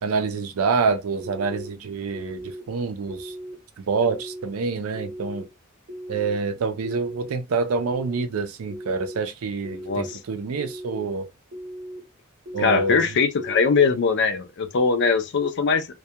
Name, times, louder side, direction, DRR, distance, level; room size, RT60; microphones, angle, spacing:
voice 1, 0.0-3.3 3.9-5.5 6.1-11.3 12.5-13.0, right 4 dB, 80° right, 0.4 m, -26 dB
sound 1, 1.2-1.7 2.1-2.6 3.1-3.5 4.0-4.5 4.9-5.4 5.9-6.4 6.8-7.3 7.8-8.2 8.7-9.2 9.6-10.1 10.6-11.1 11.5-12.0 12.5-13.0 13.4-13.9, equal, 35° right, 0.8 m, -37 dB
voice 2, 9.7-10.2 12.6-15.9, left 5 dB, 55° left, 0.4 m, -21 dB
2.2 x 2.2 x 2.7 m
head